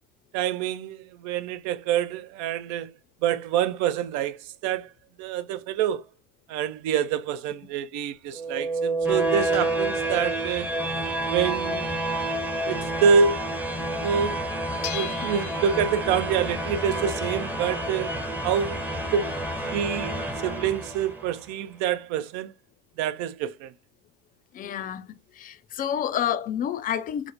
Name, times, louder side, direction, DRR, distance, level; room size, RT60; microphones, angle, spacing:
voice 1, 0.3-2.9 3.2-4.9 5.2-6.0 6.5-10.7 11.3-11.9 12.7-13.5 13.9-14.4 14.9-18.1 18.4-19.3 19.6-22.5 23.0-23.7, right 7 dB, 50° right, 0.5 m, -26 dB
sound 1, 8.0-13.5 13.9-14.0 14.2-19.1, left 10 dB, 75° left, 0.9 m, -44 dB
sound 2, 8.3-21.3, right 1 dB, 5° right, 0.7 m, -29 dB
voice 2, 24.5-25.1 25.3-27.3, left 9 dB, 25° left, 0.3 m, -29 dB
4.8 x 2.1 x 2.4 m
hypercardioid pair, 75°, 39 cm